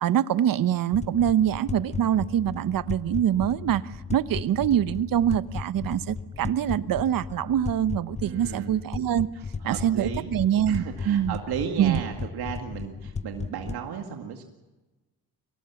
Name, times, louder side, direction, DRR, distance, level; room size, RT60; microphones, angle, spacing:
voice 1, 0.0-9.3 9.6-11.4 11.8-12.0, right 10 dB, 60° right, 0.9 m, -24 dB
sound 1, 0.9-13.9, left 5 dB, 20° left, 0.6 m, -36 dB
voice 2, 8.2-8.7 9.3-10.3 10.7-14.4, right 8 dB, 75° right, 2.1 m, -34 dB
23.5 x 19.0 x 7.1 m
cardioid pair, 85°, 38 cm